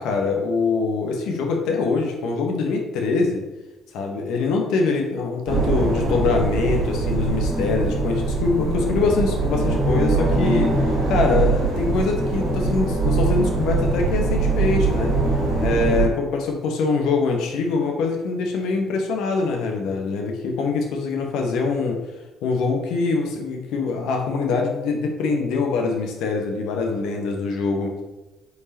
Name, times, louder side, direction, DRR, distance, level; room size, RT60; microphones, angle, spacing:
voice 1, 0.0-3.4 3.9-10.8 11.1-15.1 15.6-22.0 22.4-28.0, left 4 dB, 70° left, 2 dB, 1.1 m, -23 dB
sound 1, 5.5-16.1, right 3 dB, 75° right, 2.2 m, -22 dB
8.2 x 4.7 x 2.9 m, 1.1 s
hypercardioid pair, 55°, 0 cm